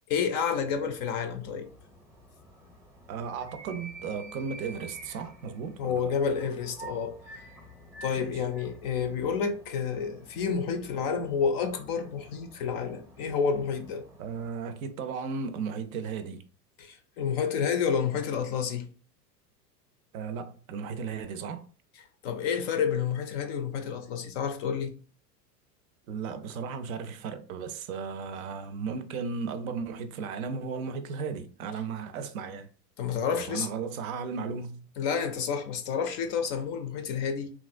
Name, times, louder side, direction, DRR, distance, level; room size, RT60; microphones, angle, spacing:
voice 1, 0.1-1.7 5.8-7.4 8.0-14.0 16.8-18.9 22.2-24.9 33.0-33.7 35.0-37.5, left 6 dB, 40° left, 0.4 m, -29 dB
sound 1, 0.6-14.5, right 1 dB, 5° right, 0.6 m, -50 dB
voice 2, 3.1-6.1 8.2-8.4 14.2-16.4 20.1-21.7 26.1-32.7 33.3-34.9, right 5 dB, 60° right, 0.5 m, -35 dB
2.9 x 2.4 x 2.4 m
hypercardioid pair, 95°, 49 cm